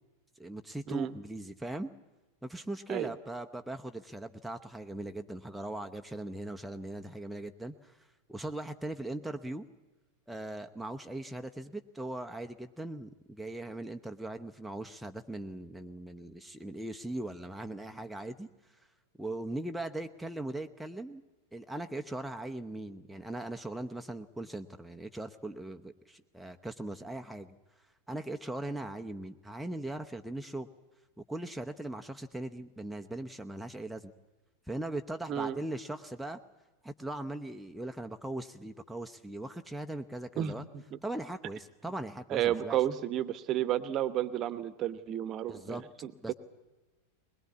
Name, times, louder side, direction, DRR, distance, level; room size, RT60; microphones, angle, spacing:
voice 1, 0.4-1.9 2.4-9.7 10.3-18.5 19.2-21.2 21.5-27.5 28.1-30.7 31.3-34.1 34.7-36.4 36.8-40.6 41.0-42.8 45.5-45.8 46.2-46.3, right 1 dB, ahead, 4 dB, 0.8 m, -39 dB
voice 2, 40.4-41.0 42.3-46.3, right 11 dB, 35° right, 14 dB, 1.0 m, -32 dB
21.0 x 21.0 x 8.5 m, 1.1 s
figure-of-eight pair, 90°, 0 cm